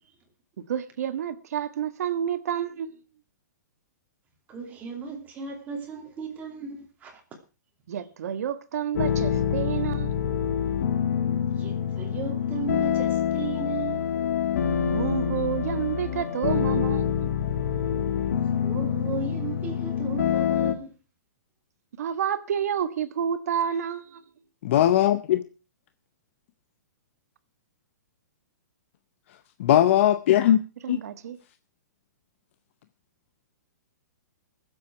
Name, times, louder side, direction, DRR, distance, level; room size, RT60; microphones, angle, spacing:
voice 1, 0.7-3.0 7.9-10.2 14.8-17.3 22.0-24.2 30.8-31.4, right 9 dB, 60° right, 1.5 m, -29 dB
voice 2, 4.5-7.2 11.6-14.0 18.6-20.9, right 5 dB, 15° right, 2.8 m, -35 dB
sound 1, 8.9-20.8, left 8 dB, 65° left, 1.4 m, -26 dB
voice 3, 24.6-25.4 29.6-30.6 30.9-31.0, left 11 dB, 45° left, 0.7 m, -19 dB
22.0 x 7.8 x 4.6 m
hypercardioid pair, 160°, 9 cm